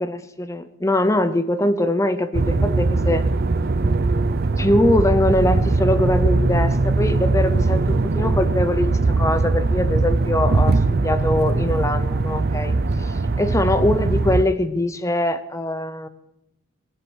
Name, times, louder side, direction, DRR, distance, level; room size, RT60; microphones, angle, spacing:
voice 1, 0.0-3.2 4.6-16.1, left 1 dB, 15° left, 12 dB, 0.6 m, -22 dB
sound 1, 2.3-14.4, right 3 dB, 45° right, 0.5 m, -20 dB
20.0 x 7.7 x 6.3 m, 0.84 s
head